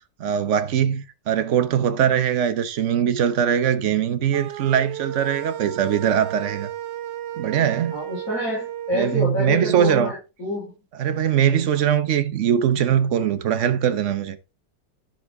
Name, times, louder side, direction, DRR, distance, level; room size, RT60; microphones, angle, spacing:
voice 1, 0.2-6.7 7.4-7.9 8.9-10.1 11.0-14.4, right 9 dB, 55° right, 0.9 m, -21 dB
sound 1, 4.3-9.2, right 12 dB, 75° right, 1.2 m, -33 dB
voice 2, 7.9-10.7, left 1 dB, 45° left, 5.3 m, -27 dB
11.0 x 5.7 x 3.5 m
omnidirectional pair, 1.9 m